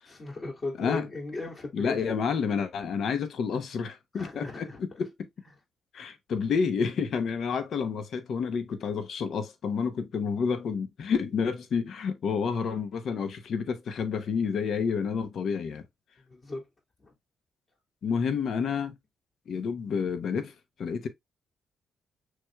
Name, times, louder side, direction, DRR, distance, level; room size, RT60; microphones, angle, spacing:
voice 1, 0.1-2.1 4.1-4.8 16.2-16.7 17.0-17.1, left 3 dB, 45° left, 2.3 m, -36 dB
voice 2, 1.7-5.1 5.9-15.8 18.0-19.0 19.5-20.5 20.8-21.1, left 6 dB, 65° left, 0.7 m, -29 dB
6.1 x 3.2 x 2.2 m
hypercardioid pair, 50°, 0 cm